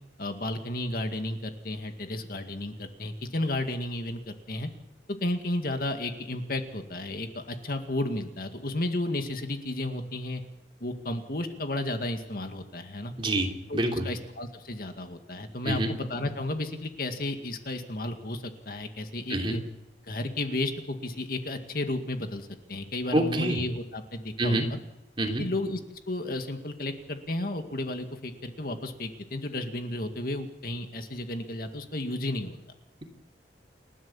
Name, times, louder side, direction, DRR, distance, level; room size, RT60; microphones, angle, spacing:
voice 1, 0.2-4.7 5.1-10.4 10.8-13.1 13.7-13.8 14.0-19.6 20.1-24.6 25.4-25.8 26.1-32.6, left 1 dB, 55° left, 6 dB, 2.1 m, -33 dB
voice 2, 13.2-14.1 15.6-15.9 19.3-19.6 23.1-23.6 24.4-24.7 25.2-25.4, right 1 dB, 30° right, 2 dB, 3.1 m, -27 dB
29.5 x 12.5 x 7.2 m, 0.95 s
head